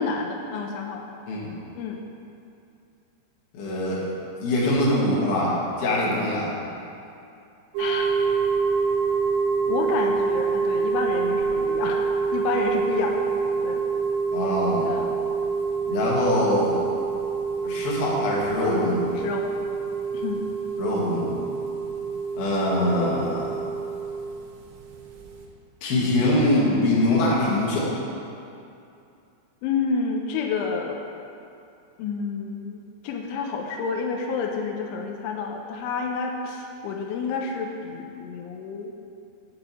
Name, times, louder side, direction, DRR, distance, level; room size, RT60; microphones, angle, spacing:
voice 1, 0.0-1.1 1.8-2.1 7.8-8.1 9.7-13.3 13.6-13.9 14.8-15.2 19.2-19.6 20.1-20.5 29.6-31.0 32.0-38.9, left 5 dB, 90° left, 2 dB, 3.1 m, -29 dB
voice 2, 3.5-4.0 4.4-6.5 14.3-14.9 15.9-16.8 17.6-19.1 20.8-21.3 22.4-23.6 25.8-27.9, left 1 dB, 60° left, -5 dB, 3.3 m, -23 dB
sound 1, 7.7-25.5, right 5 dB, 80° right, 3.2 m, -27 dB
7.8 x 5.0 x 7.3 m, 2.6 s
omnidirectional pair, 5.3 m